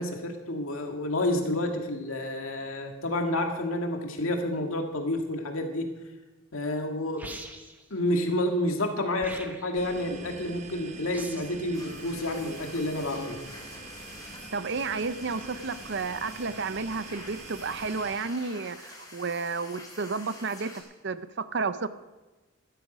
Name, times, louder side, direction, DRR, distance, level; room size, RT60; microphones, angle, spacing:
voice 1, 0.0-5.9 6.5-7.3 7.9-13.4, left 1 dB, 75° left, 3 dB, 2.1 m, -29 dB
sound 1, 7.2-7.9 9.2-9.9 11.1-11.6, right 2 dB, 10° right, 1.1 m, -42 dB
sound 2, 9.7-18.2, right 3 dB, 35° right, 1.1 m, -45 dB
sound 3, 11.7-20.8, left 2 dB, 20° left, 3.1 m, -47 dB
voice 2, 14.5-21.9, right 4 dB, 55° right, 13 dB, 0.7 m, -32 dB
14.5 x 12.5 x 5.2 m, 1.1 s
head